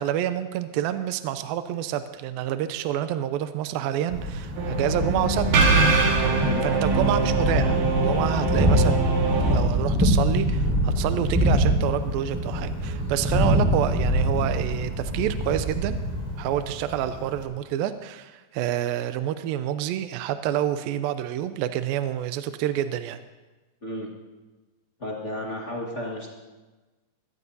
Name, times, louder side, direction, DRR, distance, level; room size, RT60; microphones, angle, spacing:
voice 1, 0.0-5.5 6.6-16.0 16.4-23.2, right 11 dB, 80° right, 10 dB, 2.3 m, -28 dB
Thunder, 4.1-17.4, equal, 5° right, 4.5 m, -25 dB
sound 1, 4.5-9.6, right 3 dB, 60° right, 3.0 m, -23 dB
voice 2, 25.0-26.3, left 1 dB, 55° left, -3 dB, 0.7 m, -33 dB
23.0 x 17.0 x 2.7 m, 1.2 s
omnidirectional pair, 4.4 m